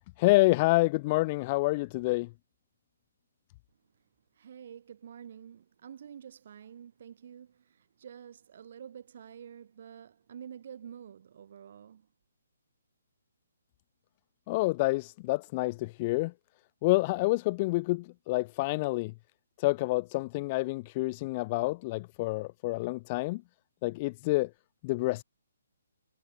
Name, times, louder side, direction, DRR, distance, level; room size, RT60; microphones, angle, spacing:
voice 1, 0.2-2.3 14.5-16.3 16.8-19.1 19.6-23.4 23.8-24.5 24.8-25.2, left 22 dB, 30° left, 1.2 m, -28 dB
voice 2, 4.4-7.6 8.0-12.1, right 8 dB, 55° right, 7.8 m, -48 dB
hypercardioid pair, 145°, 0 cm